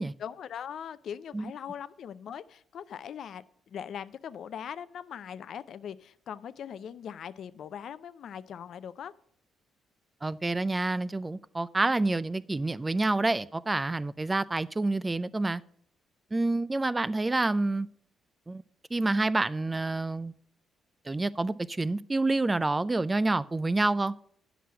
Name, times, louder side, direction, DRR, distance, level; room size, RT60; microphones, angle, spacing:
voice 1, 0.0-9.1, left 8 dB, 65° left, 0.5 m, -41 dB
voice 2, 10.2-15.6 16.3-17.9 18.5-18.6 18.9-20.3 21.1-24.1, right 2 dB, 20° right, 0.4 m, -28 dB
9.4 x 6.0 x 5.5 m
cardioid pair, 90°, 0 cm